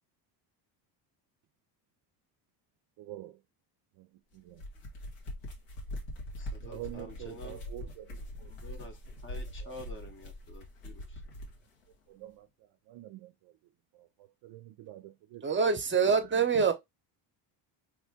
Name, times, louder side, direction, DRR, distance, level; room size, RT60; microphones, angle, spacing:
voice 1, 3.0-3.4 4.0-4.1 4.3-4.6 6.6-8.5 9.3-9.7 12.1-12.5 12.9-13.5 13.9-15.5 16.5-16.7, right 15 dB, 55° right, 0.5 m, -46 dB
sound 1, 4.4-11.6, left 1 dB, 80° left, 1.5 m, -42 dB
voice 2, 6.4-7.6 8.4-9.0 9.2-11.2, left 1 dB, 25° left, 0.8 m, -48 dB
voice 3, 15.4-16.7, right 5 dB, 25° right, 0.8 m, -25 dB
3.2 x 2.5 x 3.4 m
supercardioid pair, 85°, 49 cm